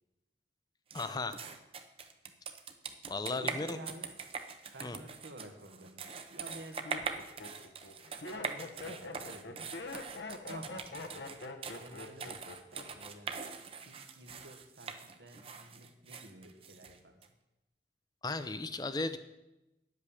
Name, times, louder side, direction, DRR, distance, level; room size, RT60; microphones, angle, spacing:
voice 1, 0.9-1.4 3.1-3.8 4.8-5.0 18.2-19.2, left 3 dB, 20° left, 11 dB, 0.6 m, -35 dB
sound 1, 0.9-17.3, right 5 dB, 30° right, 0.8 m, -43 dB
voice 2, 3.2-4.1 4.7-6.0 6.3-7.2 8.1-9.8 10.5-11.0 11.8-13.4 13.8-17.2, right 1 dB, 75° right, 5 dB, 1.5 m, -51 dB
Laughter, 5.8-5.9 6.5-13.1 13.4-13.9, left 3 dB, 75° left, 1.2 m, -44 dB
10.0 x 8.2 x 7.1 m, 0.96 s
head